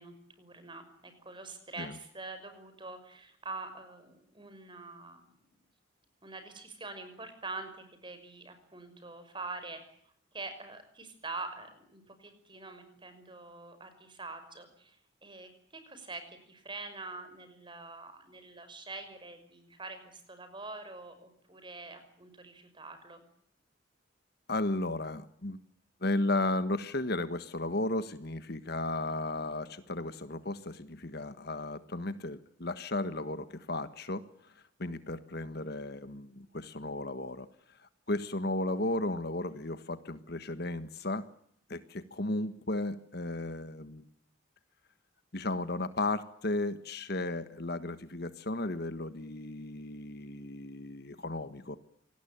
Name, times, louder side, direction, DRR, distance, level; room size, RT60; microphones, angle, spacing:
voice 1, 0.0-5.3 6.2-9.8 10.3-15.0 15.2-23.2, right 3 dB, 25° right, 9 dB, 5.9 m, -45 dB
voice 2, 24.5-25.6 26.0-34.5 34.8-37.5 37.8-41.2 41.7-44.1 45.3-51.8, left 2 dB, 55° left, 12 dB, 1.5 m, -34 dB
27.0 x 19.5 x 8.8 m, 0.68 s
head